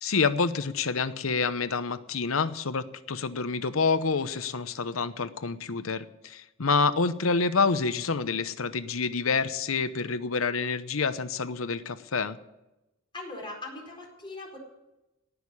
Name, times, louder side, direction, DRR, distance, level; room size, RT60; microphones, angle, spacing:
voice 1, 0.0-12.4, left 4 dB, 80° left, 13 dB, 0.8 m, -28 dB
voice 2, 13.1-14.6, left 2 dB, 25° left, -1 dB, 4.7 m, -40 dB
18.0 x 6.5 x 9.8 m, 0.97 s
head